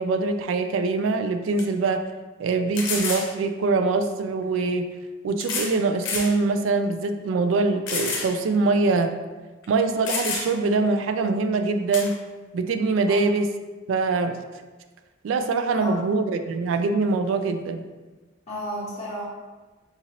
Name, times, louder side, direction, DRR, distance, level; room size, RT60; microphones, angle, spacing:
voice 1, 0.0-2.0 2.4-4.9 5.2-9.1 9.7-12.2 12.5-13.5 13.9-14.4 15.2-17.8, right 3 dB, 90° right, 8 dB, 0.3 m, -23 dB
sound 1, 1.0-1.1 1.6-1.7 2.7-3.3 4.4-4.5 5.4-5.8 6.0-6.3 6.8-6.9 7.9-8.3 8.7-8.8 9.6-9.7 10.0-10.7 11.9-12.1, left 4 dB, 75° left, 0.7 m, -28 dB
voice 2, 18.5-19.3, equal, 35° left, -9 dB, 0.8 m, -32 dB
3.7 x 2.7 x 2.9 m, 1.3 s
head